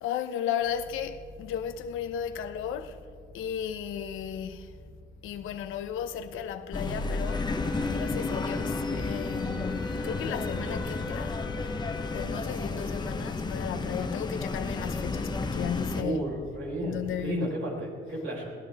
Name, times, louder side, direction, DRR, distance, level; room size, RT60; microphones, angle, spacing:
voice 1, 0.0-3.0 3.3-4.7 5.2-7.5 7.9-11.4 12.1-16.2 16.8-17.6, left 9 dB, 90° left, 0.9 m, -34 dB
sound 1, 0.6-17.3, right 1 dB, 50° right, 3.9 m, -50 dB
sound 2, 6.7-16.0, left 3 dB, 20° left, 1.0 m, -32 dB
sound 3, 7.2-12.4, left 1 dB, 5° right, 2.3 m, -42 dB
voice 2, 16.0-18.5, right 2 dB, 70° right, 4.9 m, -33 dB
21.0 x 17.0 x 3.6 m
cardioid pair, 90°, 20 cm